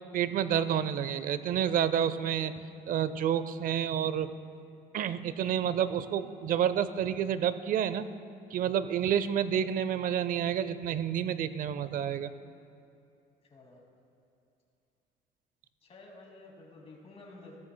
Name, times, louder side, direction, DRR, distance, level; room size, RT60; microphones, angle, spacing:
voice 1, 0.1-2.5 2.9-4.3 4.9-8.1 8.5-12.3, right 9 dB, 55° right, 14 dB, 0.5 m, -29 dB
voice 2, 13.5-13.8 15.8-17.6, left 2 dB, 35° left, 0 dB, 2.3 m, -51 dB
15.5 x 13.5 x 2.2 m, 2.5 s
cardioid pair, 110°, 17 cm